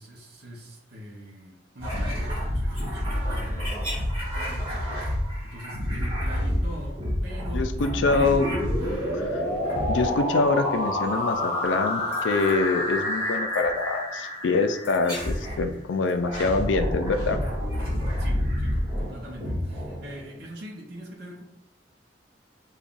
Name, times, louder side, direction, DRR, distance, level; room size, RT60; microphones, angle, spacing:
voice 1, 0.0-5.1 5.4-8.2 18.1-21.4, equal, 60° right, -1 dB, 0.6 m, -42 dB
sound 1, 1.8-9.2 9.6-10.4 12.1-12.5 13.5-13.7 14.8-15.6 16.1-20.4, equal, 30° right, 1.5 m, -29 dB
voice 2, 7.5-8.5 9.1-9.4 9.9-17.4, left 3 dB, 80° left, 7 dB, 0.4 m, -25 dB
sound 2, 7.7-15.5, left 1 dB, 30° left, 1.2 m, -29 dB
5.2 x 2.3 x 2.4 m, 0.86 s
head